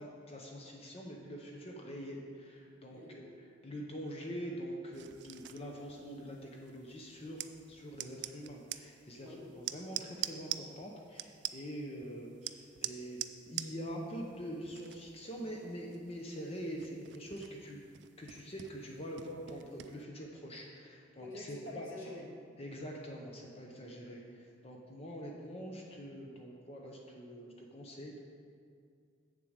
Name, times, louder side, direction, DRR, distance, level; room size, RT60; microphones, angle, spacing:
voice 1, 0.0-7.4 7.7-13.2 13.5-17.8 18.2-21.9 22.6-28.2, equal, 30° left, 0 dB, 0.8 m, -44 dB
sound 1, 4.9-20.0, right 13 dB, 60° right, 0.3 m, -46 dB
voice 2, 21.2-22.2, left 2 dB, 90° left, -4 dB, 2.2 m, -46 dB
7.6 x 7.1 x 5.1 m, 2.3 s
head